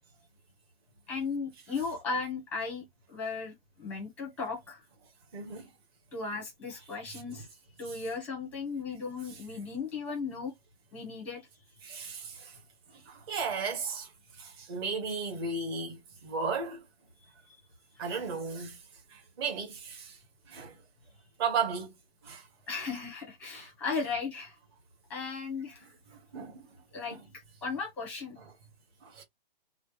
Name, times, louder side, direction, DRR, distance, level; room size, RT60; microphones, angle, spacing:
voice 1, 1.1-3.5 3.8-4.8 6.1-7.5 7.8-10.5 10.9-11.4 12.0-12.1 17.5-17.6 18.1-18.2 22.7-24.5 25.1-25.9 26.9-28.4, left 4 dB, 5° left, 0.8 m, -36 dB
voice 2, 5.3-5.7 11.8-12.6 12.9-14.1 14.4-16.8 18.0-18.8 19.1-20.2 20.5-20.7 21.4-21.9 22.2-22.4 26.3-26.7 29.0-29.2, right 5 dB, 25° right, 1.2 m, -35 dB
3.1 x 2.4 x 3.1 m
hypercardioid pair, 165°, 30 cm